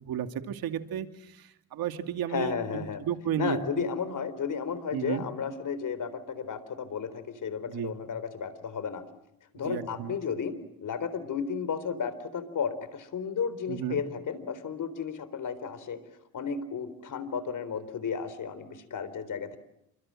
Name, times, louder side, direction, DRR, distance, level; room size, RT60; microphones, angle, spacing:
voice 1, 0.0-3.9 4.9-5.2 7.7-7.9 9.5-10.2 13.7-14.0, right 9 dB, 85° right, 7 dB, 2.6 m, -33 dB
voice 2, 2.3-3.0 3.4-9.1 9.5-16.0 16.3-19.6, left 6 dB, 60° left, 13 dB, 3.9 m, -33 dB
28.5 x 26.0 x 7.6 m, 0.81 s
cardioid pair, 95°, 35 cm